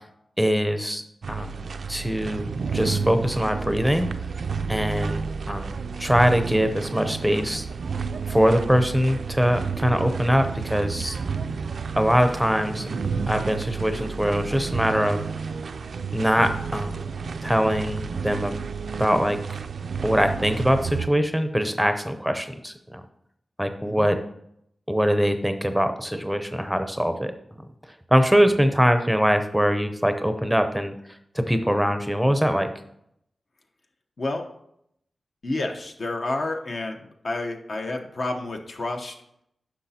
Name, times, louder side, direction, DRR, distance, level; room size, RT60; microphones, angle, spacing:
voice 1, 0.4-1.0 1.3-2.5 2.7-4.1 4.7-7.6 8.3-11.2 12.0-12.9 13.3-15.2 16.1-17.1 17.4-18.5 19.0-19.4 20.0-23.0 23.6-24.2 24.9-27.3 28.1-30.9 31.3-32.7, equal, ahead, 8 dB, 0.6 m, -22 dB
sound 1, 1.2-21.1, right 5 dB, 75° right, 0.3 m, -31 dB
voice 2, 35.4-39.1, left 2 dB, 60° left, 3 dB, 0.8 m, -30 dB
10.0 x 5.8 x 2.8 m, 0.75 s
wide cardioid pair, 80°, 0 cm